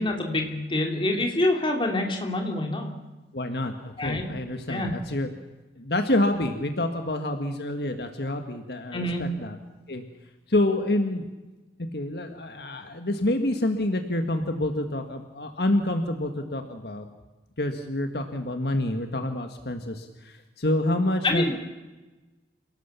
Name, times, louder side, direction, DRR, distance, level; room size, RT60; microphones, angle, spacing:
voice 1, 0.0-2.9 4.0-4.3 4.7-4.9 8.9-9.3 21.2-21.5, left 1 dB, 30° left, 2 dB, 3.4 m, -26 dB
voice 2, 3.3-5.3 5.8-9.6 9.9-10.0 10.5-11.3 11.9-17.1 17.6-21.5, left 1 dB, 65° left, 6 dB, 1.8 m, -27 dB
28.5 x 18.0 x 7.0 m, 1.1 s
head